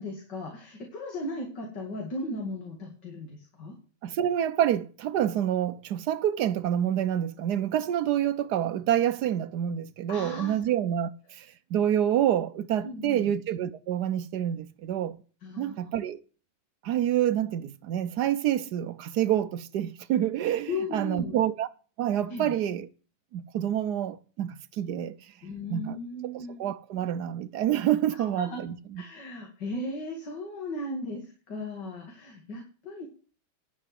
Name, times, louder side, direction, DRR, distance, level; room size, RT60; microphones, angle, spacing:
voice 1, 0.0-3.7 10.1-10.6 12.1-12.2 12.8-13.3 15.4-15.8 20.7-21.4 22.3-22.5 25.4-26.6 28.1-28.7 29.0-33.0, left 2 dB, 60° left, 2.8 m, -36 dB
voice 2, 4.0-15.2 15.6-16.2 16.8-21.7 22.0-22.9 23.3-25.1 25.7-26.0 26.3-29.0, right 10 dB, 65° right, 1.1 m, -27 dB
11.0 x 5.9 x 7.6 m
omnidirectional pair, 2.1 m